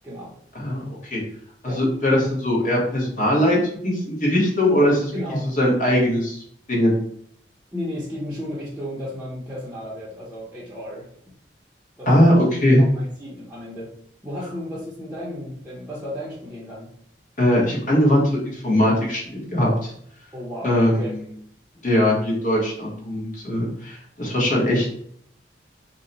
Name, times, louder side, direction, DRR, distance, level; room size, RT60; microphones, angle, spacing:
voice 1, 0.5-1.2 1.6-3.6 3.8-5.1 5.6-6.4 6.7-7.0 12.1-12.8 17.4-19.9 20.6-21.2 21.8-24.9, left 1 dB, 45° left, -3 dB, 1.1 m, -20 dB
voice 2, 5.1-5.5 7.7-11.1 12.0-12.1 12.9-13.9 14.2-16.9 20.3-21.1, equal, 10° right, -9 dB, 0.7 m, -33 dB
2.8 x 2.1 x 3.9 m, 0.66 s
head